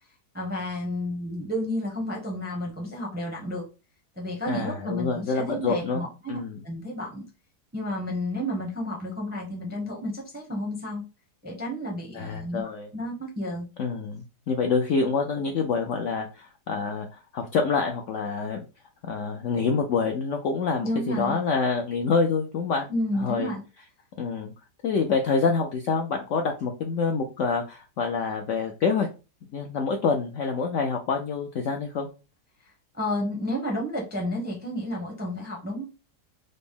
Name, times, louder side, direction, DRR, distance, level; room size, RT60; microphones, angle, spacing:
voice 1, 0.3-3.7 4.2-6.4 6.6-7.2 7.7-11.0 11.4-12.6 12.9-13.7 20.8-21.4 22.9-23.6 32.9-35.8, left 1 dB, 10° right, -1 dB, 0.4 m, -31 dB
voice 2, 4.5-6.6 12.1-12.9 13.8-18.6 19.1-22.9 23.2-23.5 24.2-24.5 24.8-29.1 29.5-32.1, left 5 dB, 75° left, 3 dB, 0.7 m, -27 dB
3.9 x 2.0 x 3.5 m, 0.31 s
omnidirectional pair, 1.8 m